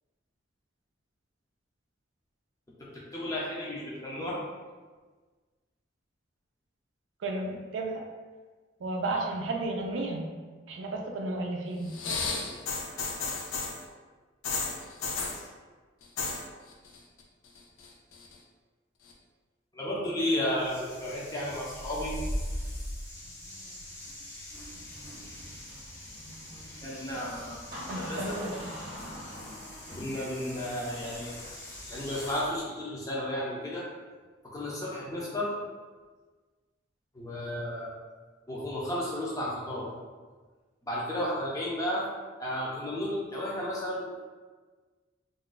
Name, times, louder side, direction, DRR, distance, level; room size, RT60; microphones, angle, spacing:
voice 1, 3.1-4.4 19.7-22.1 26.8-28.4 29.9-31.3 31.9-33.9 34.4-35.5 37.1-37.9 38.5-39.9 40.8-42.1 42.4-44.2, left 1 dB, 15° left, -5 dB, 0.5 m, -33 dB
voice 2, 7.2-8.0 8.8-10.3 10.7-11.9 27.9-28.7, right 2 dB, 70° right, 2 dB, 0.4 m, -33 dB
sound 1, 11.9-13.8 14.4-15.4 16.0-16.4 16.7-17.2 17.5-18.3 19.1-19.2, left 4 dB, 85° left, 0.5 m, -33 dB
sound 2, 20.5-32.5, equal, 55° left, 0.8 m, -41 dB
Door, 24.9-32.6, equal, 45° right, 0.8 m, -46 dB
2.5 x 2.2 x 3.8 m, 1.4 s
head